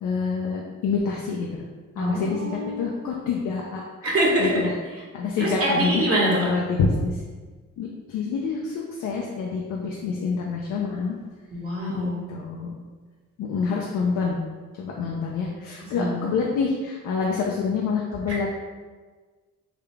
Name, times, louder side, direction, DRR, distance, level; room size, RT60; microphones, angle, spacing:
voice 1, 0.0-1.5 2.0-3.8 4.4-4.7 5.1-6.0 6.4-7.2 7.8-11.2 11.9-12.8 13.4-14.4 14.8-18.5, left 5 dB, 75° left, -1 dB, 0.5 m, -27 dB
voice 2, 2.0-3.2 4.0-4.7 5.4-6.5 11.5-12.2 15.9-16.2 18.3-18.4, right 1 dB, 50° right, -5 dB, 1.3 m, -25 dB
3.6 x 2.3 x 3.4 m, 1.4 s
cardioid pair, 90°, 30 cm